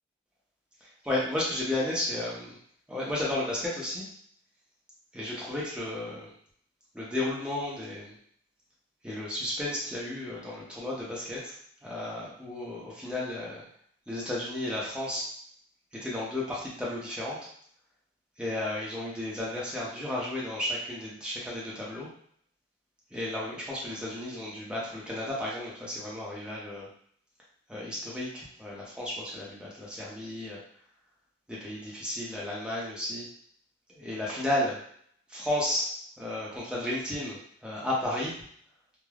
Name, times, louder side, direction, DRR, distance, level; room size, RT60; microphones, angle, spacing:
voice 1, 0.8-2.6 2.9-4.1 5.1-6.3 6.9-8.2 9.0-11.5 11.8-13.6 14.1-15.2 15.9-17.4 18.4-22.1 23.1-26.9 27.7-30.6 31.5-33.3 33.9-34.8 35.3-35.9 36.2-38.4, left 1 dB, 5° right, -6 dB, 0.7 m, -33 dB
3.2 x 2.1 x 2.3 m, 0.63 s
head